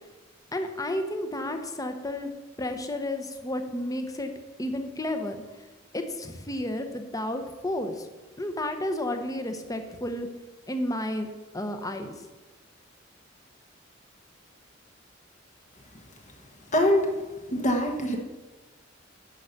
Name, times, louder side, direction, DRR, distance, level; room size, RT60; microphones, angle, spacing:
voice 1, 0.5-2.3 2.6-4.3 4.6-5.4 5.9-8.1 8.4-10.3 10.7-11.3 11.5-12.2, left 1 dB, 20° left, 7 dB, 0.9 m, -31 dB
voice 2, 16.7-17.1 17.5-18.2, left 1 dB, 40° left, 2 dB, 1.3 m, -23 dB
10.5 x 5.5 x 6.6 m, 1.2 s
head